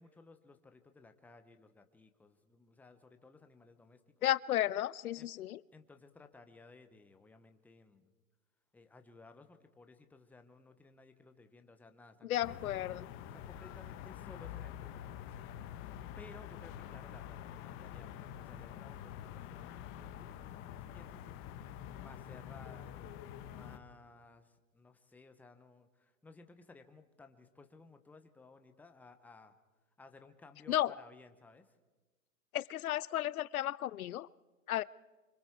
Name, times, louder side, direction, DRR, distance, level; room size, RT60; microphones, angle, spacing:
voice 1, 0.0-4.3 5.2-5.3 5.7-8.1 8.7-15.5 16.2-23.0 23.5-29.5 30.0-31.7, left 3 dB, 5° left, 7 dB, 0.8 m, -58 dB
voice 2, 4.2-5.6 12.2-13.0 30.7-30.9 32.5-34.3 34.7-34.8, left 13 dB, 85° left, 20 dB, 0.6 m, -33 dB
sound 1, 12.4-23.8, left 10 dB, 30° left, 1.1 m, -47 dB
25.5 x 25.0 x 4.6 m, 1.3 s
hypercardioid pair, 130°, 42 cm